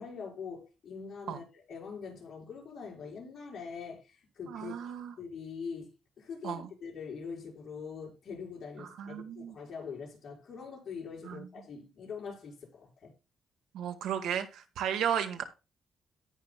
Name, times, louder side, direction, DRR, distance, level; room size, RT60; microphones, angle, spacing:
voice 1, 0.0-13.1, left 5 dB, 50° left, 6.2 m, -43 dB
voice 2, 4.5-5.1 6.4-6.7 8.8-9.6 11.2-11.5 13.7-15.4, right 9 dB, 90° right, 1.9 m, -34 dB
17.5 x 6.3 x 2.4 m
cardioid pair, 125°, 0 cm